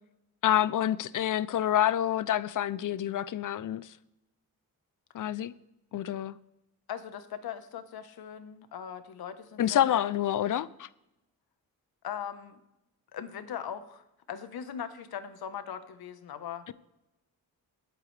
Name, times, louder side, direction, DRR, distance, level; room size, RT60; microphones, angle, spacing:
voice 1, 0.4-3.9 5.1-5.5 5.9-6.4 9.6-10.9 16.7-16.8, left 11 dB, 60° left, 0.5 m, -27 dB
voice 2, 6.9-10.0 12.0-12.6 13.1-16.7, left 8 dB, 80° left, 1.1 m, -40 dB
19.5 x 8.6 x 3.3 m
wide cardioid pair, 125°, 36 cm